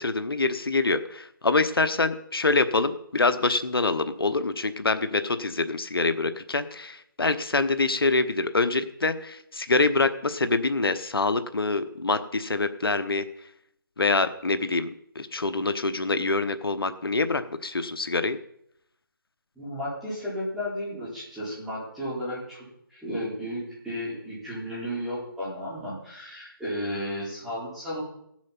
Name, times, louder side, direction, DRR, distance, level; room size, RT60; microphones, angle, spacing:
voice 1, 0.0-13.2 14.0-18.4, left 3 dB, 85° left, 11 dB, 0.9 m, -25 dB
voice 2, 19.6-28.0, equal, ahead, -10 dB, 4.2 m, -33 dB
15.5 x 7.4 x 5.8 m, 0.74 s
figure-of-eight pair, 165°, 12 cm